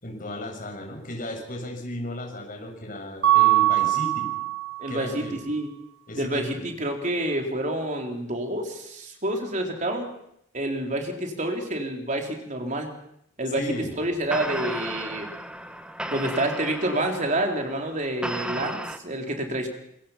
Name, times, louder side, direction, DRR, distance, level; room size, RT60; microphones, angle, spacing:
voice 1, 0.0-4.3 4.9-5.4 6.1-6.6 13.6-13.9, left 1 dB, 45° left, 2 dB, 7.0 m, -35 dB
Mallet percussion, 3.2-5.0, right 15 dB, 60° right, 2.3 m, -21 dB
voice 2, 4.8-5.7 6.1-10.1 10.5-13.0 13.4-15.3 16.1-19.7, right 1 dB, 40° right, 2 dB, 3.9 m, -28 dB
sound 1, 14.3-19.0, right 1 dB, 5° right, 1.3 m, -34 dB
26.5 x 22.0 x 5.9 m, 0.74 s
head